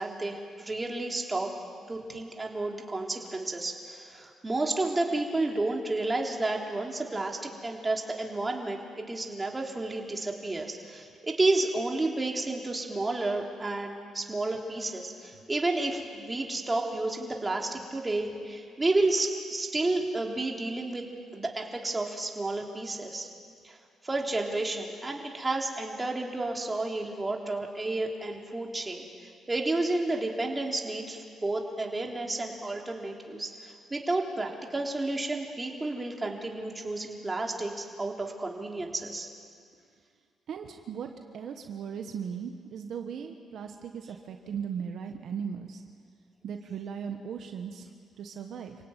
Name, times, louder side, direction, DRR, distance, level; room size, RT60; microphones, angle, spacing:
voice 1, 0.0-1.5 1.9-21.1 21.3-23.3 23.6-23.8 24.0-39.3, right 2 dB, 20° right, 1 dB, 3.5 m, -31 dB
voice 2, 40.5-45.8 46.4-47.9 48.2-48.7, right 7 dB, 65° right, 5 dB, 1.5 m, -37 dB
27.5 x 17.5 x 9.3 m, 2.2 s
cardioid pair, 90°, 0 cm